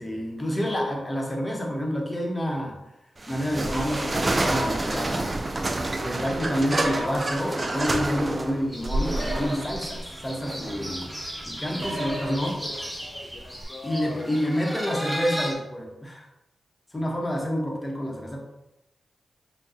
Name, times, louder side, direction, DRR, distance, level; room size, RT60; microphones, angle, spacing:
voice 1, 0.0-2.8 3.3-5.3 6.0-11.1 11.5-12.5 13.8-16.3 16.9-18.4, equal, 20° left, 0 dB, 1.0 m, -28 dB
sound 1, 3.2-13.6, right 2 dB, 35° right, 0.4 m, -29 dB
sound 2, 4.4-4.8 6.8-7.2 9.2-9.6 11.8-12.3, right 1 dB, 70° right, 0.9 m, -32 dB
sound 3, 8.7-15.5, equal, 5° right, 0.8 m, -36 dB
voice 2, 11.7-14.4 14.9-15.0 15.3-16.0, left 3 dB, 65° left, 1 dB, 0.4 m, -41 dB
5.8 x 2.3 x 2.8 m, 0.90 s
cardioid pair, 65°, 0 cm